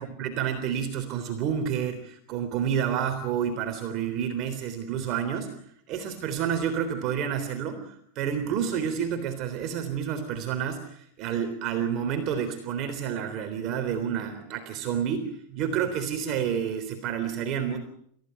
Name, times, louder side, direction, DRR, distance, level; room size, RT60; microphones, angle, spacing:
voice 1, 0.0-5.5 5.9-17.8, right 8 dB, 40° right, 6 dB, 3.5 m, -29 dB
29.5 x 15.5 x 9.1 m, 0.70 s
supercardioid pair, 150°, 0 cm